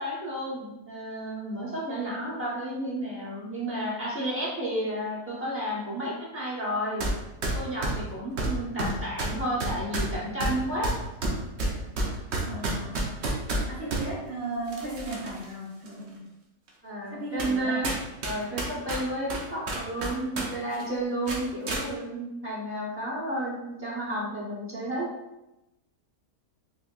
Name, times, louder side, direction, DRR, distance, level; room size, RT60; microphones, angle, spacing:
voice 1, 0.0-7.1 7.5-11.0 16.8-17.9 18.2-25.1, right 1 dB, 15° right, -8 dB, 0.4 m, -32 dB
sound 1, 7.0-7.1 7.4-14.0 14.7-15.4 15.9-16.0 16.7-16.8 17.4-17.6 17.8-20.5 20.7-20.9 21.3-21.8, right 2 dB, 60° right, 0.7 m, -29 dB
voice 2, 12.4-13.0 13.7-16.2 17.1-17.8, right 2 dB, 90° right, -8 dB, 1.7 m, -35 dB
4.1 x 2.7 x 2.3 m, 0.94 s
omnidirectional pair, 1.9 m